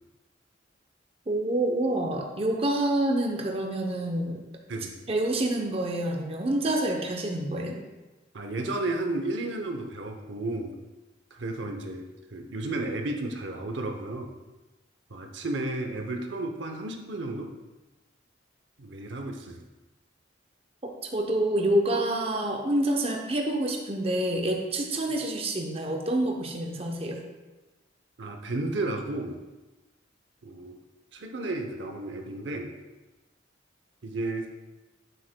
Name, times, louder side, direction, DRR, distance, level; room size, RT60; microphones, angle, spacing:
voice 1, 1.3-4.5 5.1-7.8 20.8-27.2, right 1 dB, 30° right, 1 dB, 0.7 m, -27 dB
voice 2, 8.3-10.7 11.3-14.3 15.1-17.5 18.8-19.6 28.2-29.4 30.4-30.8 31.1-32.7 34.0-34.5, right 2 dB, 70° right, 4 dB, 0.7 m, -33 dB
9.2 x 7.6 x 2.2 m, 1.1 s
head